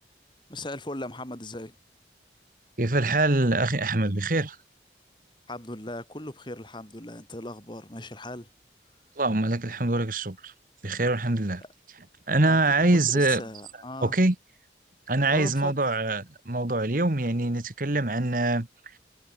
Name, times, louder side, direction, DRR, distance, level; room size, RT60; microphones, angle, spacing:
voice 1, 0.5-1.7 5.5-8.5 11.6-11.7 12.5-14.2 15.3-15.8, left 1 dB, 25° left, 3.0 m, -38 dB
voice 2, 2.8-4.6 9.2-10.5 10.8-11.6 12.3-13.4 14.0-14.3 15.1-18.7, right 2 dB, 50° right, 1.6 m, -24 dB
head